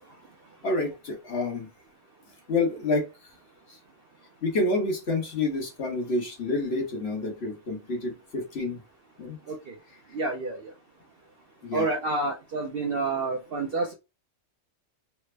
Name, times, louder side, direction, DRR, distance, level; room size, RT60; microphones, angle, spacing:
voice 1, 0.6-1.7 2.5-3.1 3.7-3.8 4.4-8.8 9.2-9.4 11.6-11.9, left 2 dB, 50° left, 1.2 m, -28 dB
voice 2, 10.1-10.7 11.7-13.9, right 3 dB, 60° right, 0.6 m, -29 dB
3.3 x 2.0 x 3.2 m
omnidirectional pair, 1.4 m